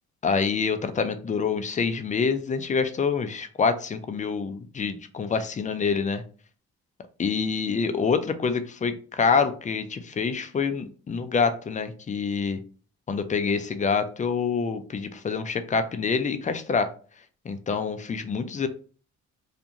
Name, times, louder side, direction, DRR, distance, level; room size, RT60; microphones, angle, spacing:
voice 1, 0.2-6.2 7.2-12.6 13.1-16.9 17.5-18.7, left 5 dB, 25° left, 10 dB, 0.3 m, -26 dB
2.5 x 2.4 x 2.8 m, 0.40 s
cardioid pair, 90°, 30 cm